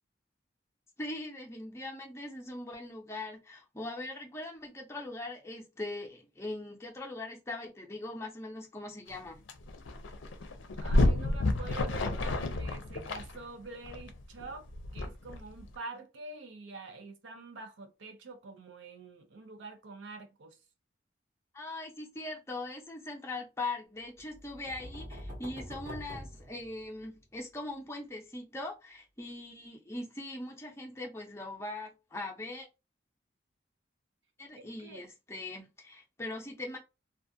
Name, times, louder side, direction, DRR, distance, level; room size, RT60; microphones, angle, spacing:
voice 1, 1.0-9.4 21.5-32.7 34.4-36.8, left 2 dB, 15° left, 0.6 m, -41 dB
sound 1, 9.1-9.2 9.5-15.7, left 2 dB, 85° left, 0.5 m, -30 dB
voice 2, 10.7-20.6 34.5-35.0, right 3 dB, 75° right, 0.5 m, -46 dB
sound 2, 24.3-27.2, equal, 60° right, 1.0 m, -45 dB
2.4 x 2.3 x 2.6 m
head